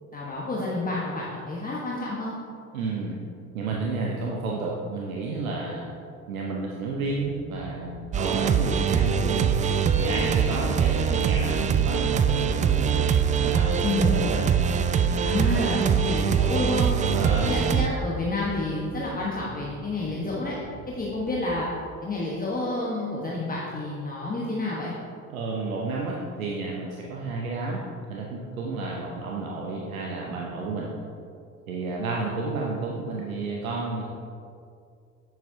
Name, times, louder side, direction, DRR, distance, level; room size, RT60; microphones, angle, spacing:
voice 1, 0.1-2.3 13.8-14.1 15.2-16.9 17.4-20.5 20.9-21.7 22.0-24.9, left 2 dB, 20° left, -5 dB, 1.3 m, -29 dB
voice 2, 2.7-3.1 3.5-6.0 6.3-9.5 10.0-13.1 13.4-14.4 15.5-16.1 17.0-17.7 25.3-27.8 28.1-30.9 31.7-34.0, right 3 dB, 85° right, -2 dB, 0.8 m, -31 dB
sound 1, 6.9-22.2, right 4 dB, 55° right, 0.9 m, -45 dB
sound 2, 8.1-17.9, right 7 dB, 20° right, 0.3 m, -23 dB
9.2 x 6.9 x 2.7 m, 2.4 s
hypercardioid pair, 55°, 41 cm